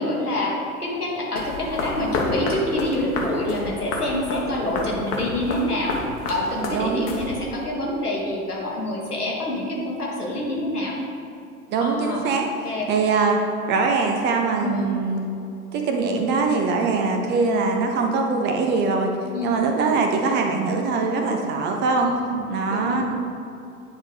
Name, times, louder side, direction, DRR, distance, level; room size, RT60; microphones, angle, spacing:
voice 1, 0.0-11.0 11.8-12.8 14.6-14.9 17.0-17.2 19.3-19.6 22.0-22.4 22.7-23.0, left 1 dB, 85° left, -3 dB, 1.6 m, -27 dB
sound 1, 1.4-7.6, left 2 dB, 40° left, 1.2 m, -30 dB
voice 2, 6.7-7.1 11.7-12.5 12.9-13.4 13.7-15.3 15.7-19.1 19.4-22.1 22.5-23.0, right 4 dB, 25° right, 3 dB, 0.6 m, -22 dB
9.2 x 3.6 x 4.8 m, 2.7 s
figure-of-eight pair, 90°, 44 cm